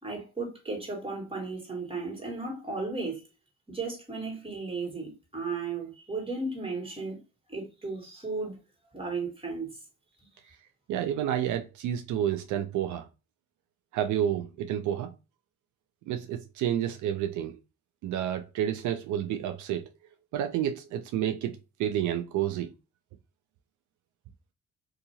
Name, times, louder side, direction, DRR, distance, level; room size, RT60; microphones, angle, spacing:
voice 1, 0.0-3.2 3.7-7.2 7.5-8.6 8.9-9.7, right 3 dB, 20° right, 1.6 m, -35 dB
voice 2, 10.9-13.1 13.9-15.1 16.1-17.6 18.0-19.9 20.3-21.5 21.8-22.7, right 10 dB, 75° right, 0.5 m, -30 dB
2.8 x 2.5 x 2.7 m
cardioid pair, 90°, 30 cm